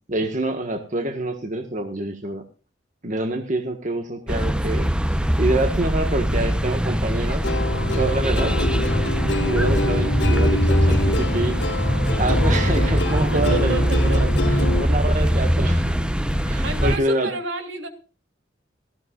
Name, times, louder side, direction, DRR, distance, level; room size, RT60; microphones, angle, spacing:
voice 1, 0.1-2.4 3.0-7.5 7.8-8.6 9.4-11.6 12.2-13.7 14.0-16.1 16.3-17.3, right 1 dB, 40° right, 5 dB, 1.5 m, -26 dB
sound 1, 4.3-17.0, equal, 5° right, 0.8 m, -21 dB
Plucked string instrument, 7.4-14.8, left 2 dB, 65° left, 1.7 m, -27 dB
voice 2, 13.1-14.2 16.6-17.9, right 3 dB, 75° right, 6 dB, 3.2 m, -29 dB
18.0 x 16.0 x 2.5 m, 0.35 s
head